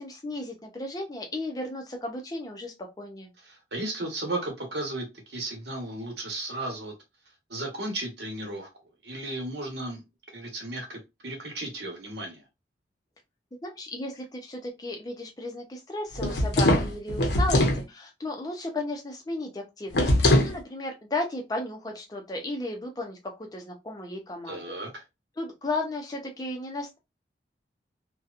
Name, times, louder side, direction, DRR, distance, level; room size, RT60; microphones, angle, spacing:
voice 1, 0.0-3.3 13.6-20.1 20.4-23.2 23.5-24.6 25.4-27.0, left 2 dB, 20° left, 0.5 m, -34 dB
voice 2, 3.4-6.9 7.5-8.7 9.0-10.0 10.3-12.4 24.5-25.0, right 2 dB, 70° right, 1.1 m, -35 dB
sound 1, 16.1-17.8 19.9-20.6, left 1 dB, 75° left, 0.7 m, -22 dB
2.7 x 2.2 x 2.4 m
head